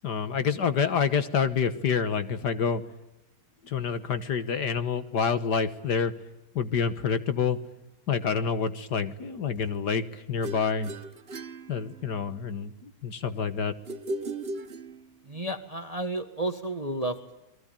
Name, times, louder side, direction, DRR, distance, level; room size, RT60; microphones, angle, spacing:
voice 1, 0.0-2.8 3.6-6.1 6.5-7.6 8.1-10.9 11.7-13.7, left 6 dB, 55° left, 11 dB, 1.8 m, -27 dB
sound 1, 10.4-12.4 13.9-15.4, right 2 dB, 35° right, 1.1 m, -37 dB
voice 2, 15.3-17.3, right 1 dB, 20° right, 9 dB, 1.3 m, -32 dB
28.0 x 22.0 x 8.9 m, 0.96 s
omnidirectional pair, 2.2 m